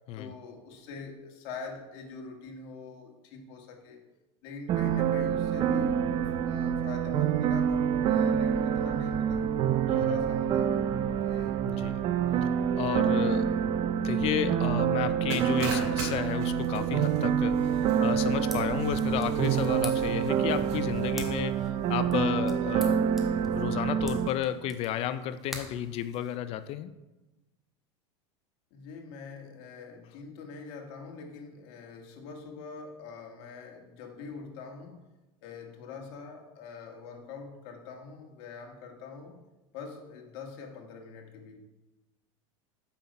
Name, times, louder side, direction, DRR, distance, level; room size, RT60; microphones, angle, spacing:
voice 1, 0.1-4.0 4.4-6.0 6.4-9.5 10.0-10.8 11.2-11.7 17.9-18.2 28.7-35.0 35.4-39.4 39.7-41.6, left 5 dB, 65° left, 2 dB, 1.7 m, -44 dB
sound 1, 4.7-24.3, right 8 dB, 35° right, 0.5 m, -27 dB
voice 2, 11.6-12.0 12.8-13.5 14.0-23.1 23.5-26.9, left 11 dB, 45° left, 13 dB, 0.4 m, -32 dB
sound 2, 15.3-21.1, right 3 dB, 80° right, 2.6 m, -41 dB
sound 3, 18.2-26.7, equal, ahead, 1.1 m, -47 dB
7.3 x 5.7 x 5.3 m, 1.1 s
supercardioid pair, 130°, 14 cm